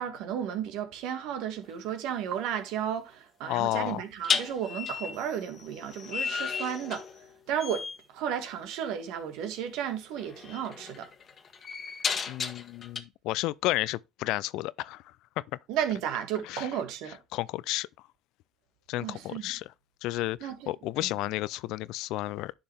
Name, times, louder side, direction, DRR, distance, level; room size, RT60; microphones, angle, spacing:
voice 1, 0.0-7.1 7.5-7.8 8.1-11.1 15.7-17.2 19.0-19.5 20.4-20.7 21.0-21.1, right 9 dB, 70° right, 1.8 m, -33 dB
sound 1, 1.6-1.9 4.2-7.3 7.6-8.0 9.5-9.7 10.2-13.0, left 6 dB, 40° left, 1.4 m, -34 dB
voice 2, 3.5-4.0 12.3-15.0 15.4-15.5 16.4-16.7 17.3-17.9 18.9-19.7 20.0-22.5, left 17 dB, 70° left, 0.4 m, -32 dB
10.0 x 5.7 x 3.4 m
hypercardioid pair, 70°, 0 cm